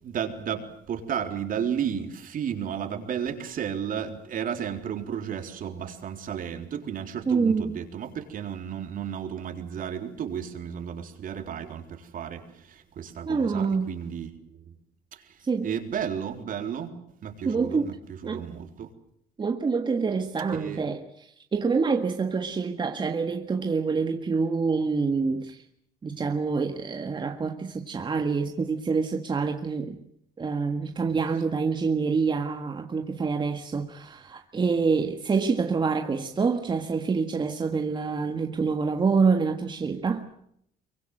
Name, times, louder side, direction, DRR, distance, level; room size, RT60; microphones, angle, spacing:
voice 1, 0.0-14.7 15.1-15.4 15.6-17.9 18.2-18.9 20.6-20.8, right 8 dB, 55° right, 3.8 m, -33 dB
voice 2, 7.3-7.8 13.3-13.9 15.4-15.7 17.5-18.0 18.2-18.5 19.4-25.6 26.0-30.0 30.4-40.2, right 5 dB, 25° right, 1.7 m, -26 dB
24.0 x 23.5 x 7.8 m
cardioid pair, 110°, 17 cm